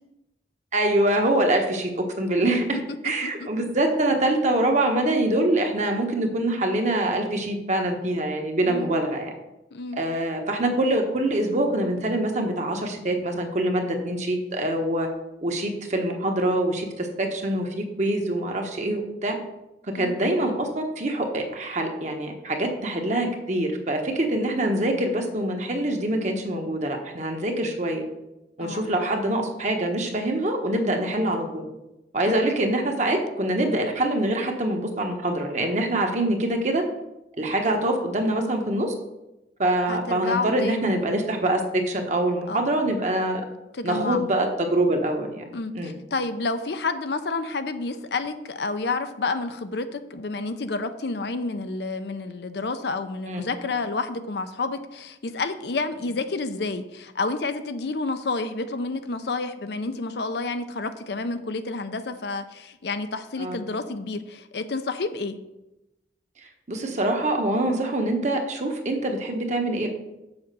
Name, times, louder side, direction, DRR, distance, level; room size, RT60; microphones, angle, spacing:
voice 1, 0.7-9.3 9.9-15.1 15.4-19.4 19.8-28.1 28.6-31.7 32.1-36.8 37.4-38.9 39.6-43.4 43.8-45.4 45.7-45.9 53.3-53.4 63.4-63.6 66.4-69.9, right 1 dB, 40° right, 3 dB, 1.2 m, -25 dB
voice 2, 2.7-3.5 8.6-8.9 9.7-10.0 19.9-20.2 28.6-28.9 32.3-32.4 39.9-41.2 42.5-42.6 43.7-44.2 45.5-65.4, left 3 dB, 60° left, 9 dB, 0.6 m, -30 dB
7.1 x 5.1 x 6.7 m, 0.94 s
head